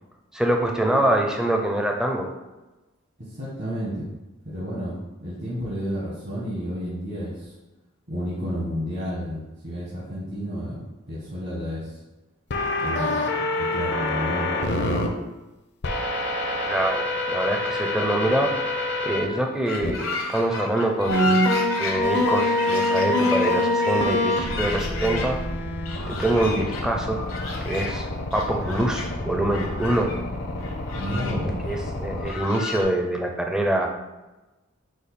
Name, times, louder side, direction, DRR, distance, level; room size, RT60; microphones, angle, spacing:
voice 1, 0.3-2.3 16.6-21.4 21.8-25.4 26.1-27.2 27.6-30.1 31.7-33.9, right 1 dB, 5° right, 1 dB, 0.4 m, -25 dB
voice 2, 3.3-4.1 4.4-7.5 8.1-12.0 12.7-14.5 30.9-31.6, equal, 55° right, -8 dB, 1.2 m, -31 dB
sound 1, 12.5-15.1 15.8-19.2 19.8-19.9 21.1-32.3, left 1 dB, 55° left, 0.5 m, -26 dB
sound 2, 19.7-25.3 25.9-26.8 27.1-28.0 28.3-29.1 29.5-30.2 30.6-31.4 31.7-31.8 32.1-32.8, left 3 dB, 80° left, 0.9 m, -33 dB
5.0 x 2.3 x 4.1 m, 1.1 s
head